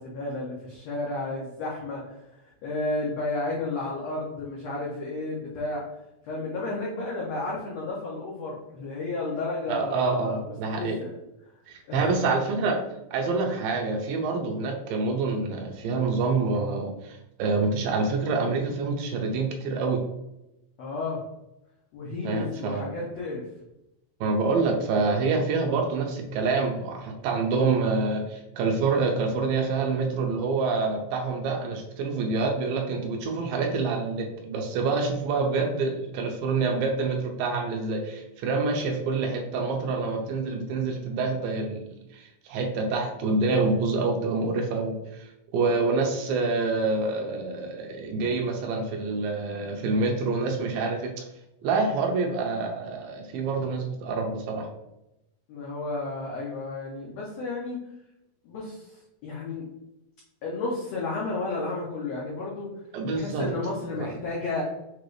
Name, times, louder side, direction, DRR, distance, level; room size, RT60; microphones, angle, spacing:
voice 1, 0.0-2.2 2.4-5.8 6.3-10.4 10.8-11.1 11.9-12.1 20.8-21.2 21.9-23.4 55.5-57.8 58.4-58.9 59.2-59.7 60.4-62.7 63.1-64.6, left 2 dB, 90° left, -4 dB, 1.4 m, -32 dB
voice 2, 9.7-11.0 11.7-12.8 13.1-20.0 22.3-22.9 24.2-41.8 42.1-45.3 45.5-51.2 51.6-54.7 62.9-63.5 64.0-64.1, right 3 dB, 85° right, 3 dB, 2.3 m, -27 dB
6.6 x 2.5 x 3.2 m, 0.90 s
omnidirectional pair, 4.2 m